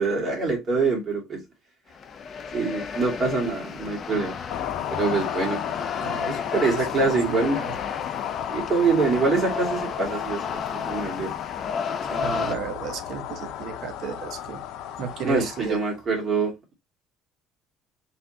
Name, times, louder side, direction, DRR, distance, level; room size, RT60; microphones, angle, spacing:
voice 1, 0.0-1.4 2.5-4.3 4.9-5.6 6.2-7.6 8.5-11.3 15.2-16.7, right 4 dB, 30° right, 2.0 m, -25 dB
sound 1, 1.9-12.6, left 6 dB, 35° left, 0.5 m, -33 dB
sound 2, 4.5-16.0, left 11 dB, 70° left, 0.7 m, -34 dB
voice 2, 7.0-7.7 12.1-14.6 15.0-15.8, right 6 dB, 55° right, 0.9 m, -33 dB
4.3 x 3.6 x 2.8 m
cardioid pair, 150°, 0 cm